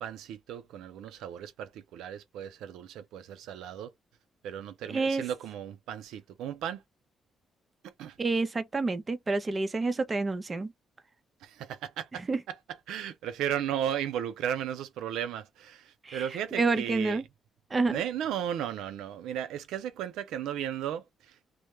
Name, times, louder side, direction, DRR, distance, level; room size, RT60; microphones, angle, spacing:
voice 1, 0.0-3.9 4.4-6.8 8.0-8.2 11.4-12.2 12.5-12.6 12.9-17.2 17.9-21.3, right 10 dB, 85° right, 0.3 m, -35 dB
voice 2, 4.9-5.2 8.2-10.7 12.3-12.4 16.0-16.3 16.5-17.2 17.7-18.0, right 3 dB, 30° right, 0.6 m, -28 dB
2.1 x 2.0 x 2.9 m
cardioid pair, 90°, 0 cm